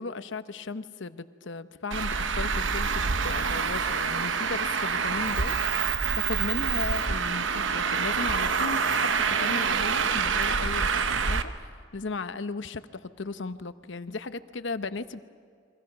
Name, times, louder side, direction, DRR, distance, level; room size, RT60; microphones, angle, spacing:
voice 1, 0.0-15.2, left 3 dB, 70° left, 12 dB, 0.8 m, -36 dB
Traffic noise roadway noise, 1.9-11.4, right 5 dB, 75° right, 0.9 m, -26 dB
29.5 x 23.5 x 5.9 m, 2.2 s
head